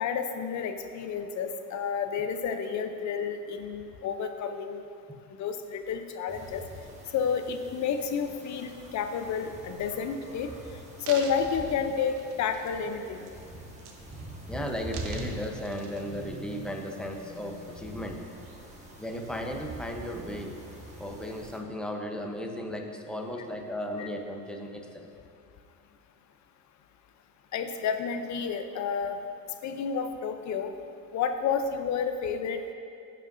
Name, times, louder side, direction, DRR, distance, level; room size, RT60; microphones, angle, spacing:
voice 1, 0.0-4.8 5.4-6.6 7.1-10.5 11.1-13.2 24.0-24.1 27.5-29.2 29.6-30.7 31.1-32.7, left 6 dB, 35° left, 7 dB, 0.6 m, -30 dB
sound 1, 6.3-21.6, right 1 dB, 15° right, 1.4 m, -44 dB
sound 2, 10.2-10.3 10.8-12.9 13.3-13.5 13.8-14.4 14.7-16.4 17.0-17.1, right 5 dB, 70° right, 1.1 m, -45 dB
voice 2, 14.5-18.3 19.0-20.6 21.0-25.1, equal, ahead, 2 dB, 0.8 m, -36 dB
14.5 x 5.4 x 2.6 m, 2.5 s
hypercardioid pair, 90°, 49 cm